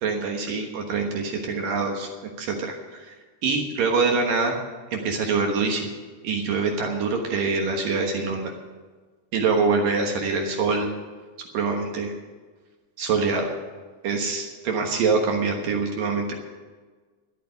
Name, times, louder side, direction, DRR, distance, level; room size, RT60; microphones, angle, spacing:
voice 1, 0.0-2.1 2.4-3.1 3.4-4.6 4.9-5.9 6.2-8.5 9.3-10.9 11.5-12.1 13.0-13.5 14.0-16.3, right 4 dB, 65° right, 2 dB, 2.7 m, -24 dB
13.0 x 8.5 x 9.7 m, 1.4 s
omnidirectional pair, 4.8 m